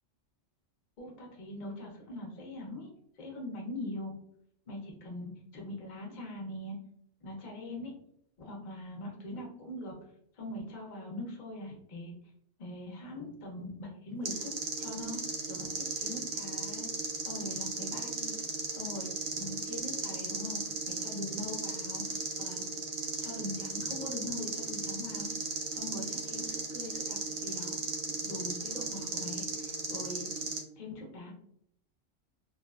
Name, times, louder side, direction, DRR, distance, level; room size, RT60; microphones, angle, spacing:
voice 1, 1.0-2.9 3.2-4.1 4.7-6.8 7.2-7.9 8.4-9.9 10.4-12.1 12.6-14.5 14.8-15.2 15.5-15.7 16.0-16.9 17.2-18.4 18.7-20.6 20.9-22.6 23.2-25.3 25.7-27.7 28.2-30.3 30.8-31.3, left 1 dB, 40° left, -2 dB, 0.7 m, -42 dB
sound 1, 14.2-30.6, right 4 dB, 60° right, 0.7 m, -36 dB
2.7 x 2.1 x 2.3 m, 0.69 s
omnidirectional pair, 1.3 m